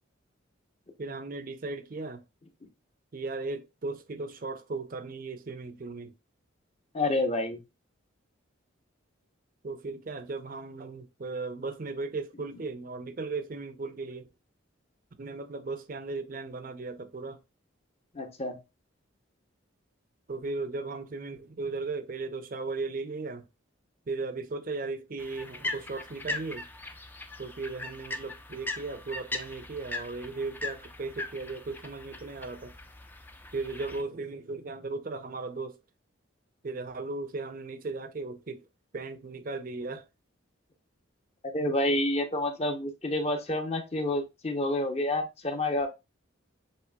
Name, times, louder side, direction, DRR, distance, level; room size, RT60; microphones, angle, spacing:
voice 1, 1.0-2.2 3.1-6.1 9.6-14.3 15.2-17.4 20.3-23.5 24.1-26.6 27.4-32.7 33.5-35.8 36.6-38.6 38.9-40.0, right 3 dB, 45° right, 0.6 m, -36 dB
voice 2, 6.9-7.6 18.1-18.6 41.5-45.9, left 1 dB, 30° left, 0.7 m, -28 dB
sound 1, 25.2-34.0, left 2 dB, 10° left, 0.4 m, -39 dB
7.3 x 3.1 x 2.2 m
head